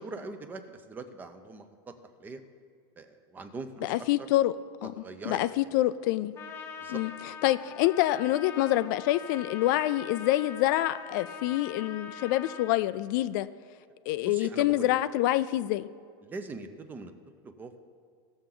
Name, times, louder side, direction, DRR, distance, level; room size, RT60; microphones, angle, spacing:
voice 1, 0.0-1.9 2.2-2.4 3.0-4.1 4.8-5.4 6.8-7.0 14.3-14.9 16.2-17.1 17.4-17.8, right 3 dB, 15° right, 9 dB, 0.6 m, -42 dB
voice 2, 3.8-4.6 4.8-6.3 6.9-13.5 14.1-15.9, left 15 dB, 50° left, 13 dB, 0.4 m, -27 dB
Trumpet, 6.3-12.8, left 6 dB, 20° left, 0.8 m, -43 dB
18.0 x 7.0 x 3.8 m, 2.2 s
supercardioid pair, 165°, 13 cm